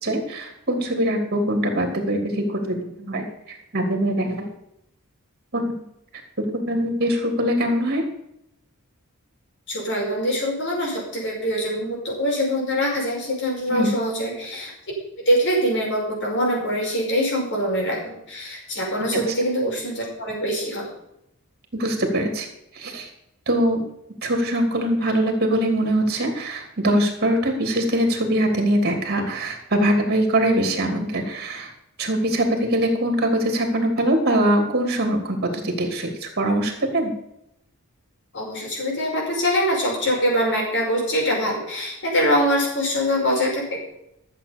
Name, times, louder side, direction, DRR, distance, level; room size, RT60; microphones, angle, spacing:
voice 1, 0.0-4.5 5.5-5.8 6.4-8.1 13.7-14.0 19.1-19.2 21.7-22.5 22.7-23.1 23.5-23.8 24.2-31.7 32.0-37.1, right 1 dB, 45° right, 4 dB, 2.9 m, -22 dB
voice 2, 9.7-14.7 15.2-20.9 38.3-43.9, equal, 55° left, -2 dB, 5.4 m, -24 dB
13.0 x 7.6 x 7.0 m, 0.80 s
head